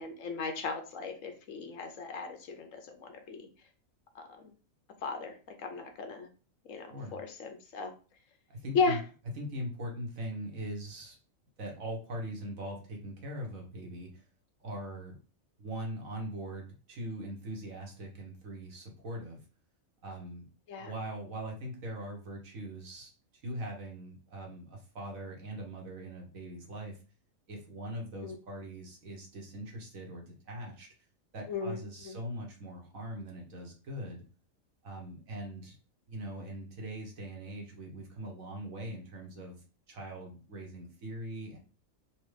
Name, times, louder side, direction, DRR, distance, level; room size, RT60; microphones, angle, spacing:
voice 1, 0.0-3.5 4.1-4.5 5.0-6.3 6.7-7.9 8.7-9.0 20.7-20.9 28.2-28.3 31.5-32.2, left 4 dB, 70° left, 5 dB, 1.2 m, -36 dB
voice 2, 8.5-9.0 9.3-11.2 11.6-14.2 14.6-15.2 15.6-19.4 20.0-20.5 20.8-27.0 27.5-30.9 31.3-34.2 34.8-35.8 36.1-41.6, right 1 dB, 75° right, 0 dB, 1.6 m, -41 dB
4.4 x 2.4 x 3.2 m, 0.36 s
omnidirectional pair, 1.4 m